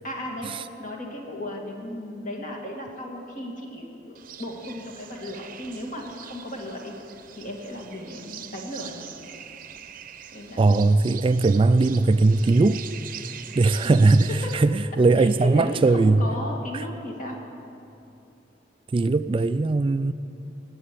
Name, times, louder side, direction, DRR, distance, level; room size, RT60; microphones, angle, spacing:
voice 1, 0.0-6.9 7.4-9.0 10.3-11.1 13.8-14.1 14.4-14.5 15.2-17.4, left 1 dB, 45° left, 0 dB, 2.3 m, -35 dB
sound 1, 4.1-14.6, right 9 dB, 50° right, 0.7 m, -42 dB
voice 2, 10.6-12.8 13.5-16.3 16.7-16.8 18.9-20.1, right 3 dB, 30° right, 12 dB, 0.3 m, -19 dB
18.0 x 7.6 x 9.2 m, 2.8 s
head